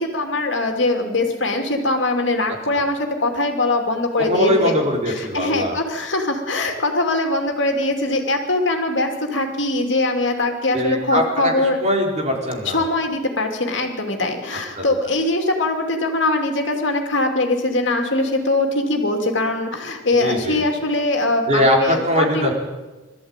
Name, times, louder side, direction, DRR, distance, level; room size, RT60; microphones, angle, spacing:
voice 1, 0.0-4.8 5.1-11.8 12.7-22.5, left 2 dB, 60° left, 3 dB, 2.7 m, -22 dB
voice 2, 4.3-5.8 10.7-12.8 14.7-14.8 20.2-20.6 21.5-22.5, equal, 35° right, -1 dB, 4.3 m, -21 dB
22.0 x 14.0 x 9.0 m, 1.2 s
head